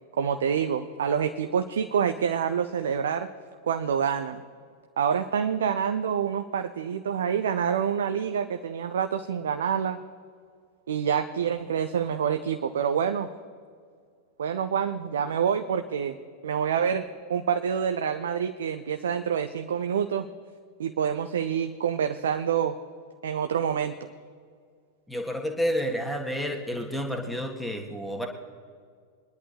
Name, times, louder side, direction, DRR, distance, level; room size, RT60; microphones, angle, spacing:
voice 1, 0.2-3.3 3.6-4.4 5.0-10.1 10.9-13.3 14.4-16.2 16.4-20.3 20.8-22.8 23.2-23.9, right 7 dB, 65° right, 8 dB, 0.6 m, -27 dB
voice 2, 25.1-28.3, equal, 5° left, 2 dB, 1.7 m, -30 dB
23.5 x 11.0 x 3.4 m, 2.1 s
figure-of-eight pair, 90°, 0 cm